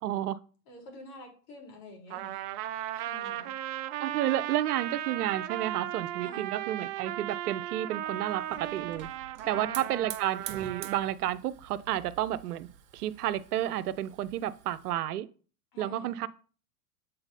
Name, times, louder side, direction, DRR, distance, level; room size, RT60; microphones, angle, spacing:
voice 1, 0.0-0.4 4.0-9.1 9.5-12.7 12.9-15.3 15.8-16.3, right 12 dB, 80° right, 0.6 m, -31 dB
voice 2, 0.7-2.4 2.9-3.5 6.2-6.6 9.4-10.1 15.7-16.2, left 2 dB, 50° left, 3.2 m, -48 dB
Trumpet, 2.1-11.1, right 13 dB, 35° right, 0.4 m, -36 dB
Hiss / Fire, 8.1-14.9, right 10 dB, 65° right, 1.1 m, -47 dB
7.7 x 4.0 x 4.1 m
hypercardioid pair, 110°, 45 cm